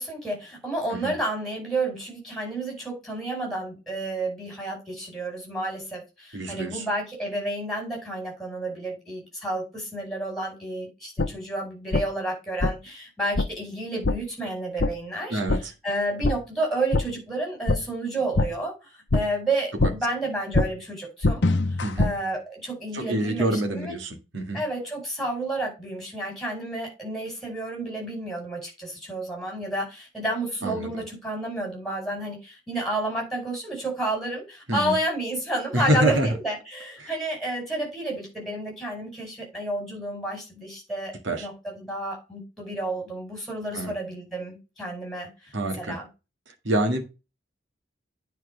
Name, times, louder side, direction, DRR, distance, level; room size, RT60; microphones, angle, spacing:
voice 1, 0.0-15.4 15.8-21.5 22.0-23.9 24.5-45.3 45.8-46.1, right 1 dB, ahead, 5.2 m, -31 dB
voice 2, 6.3-6.8 15.3-15.7 21.8-22.1 22.9-24.6 30.6-30.9 34.7-35.0 35.7-36.3 37.0-37.1 41.2-41.5 43.7-43.9 45.5-46.0 46.6-47.0, right 1 dB, 75° right, 1.9 m, -26 dB
sound 1, 11.2-11.3 11.9-12.0 12.6-12.7 13.3-13.5 14.0-14.2 14.8-14.9 15.5-15.6 16.2-16.3 16.9-17.0 17.7-17.8 18.3-18.5 19.1-19.2 19.8-19.9 20.5-20.7 21.2-22.1, left 2 dB, 65° left, 0.8 m, -22 dB
9.3 x 4.5 x 5.2 m
head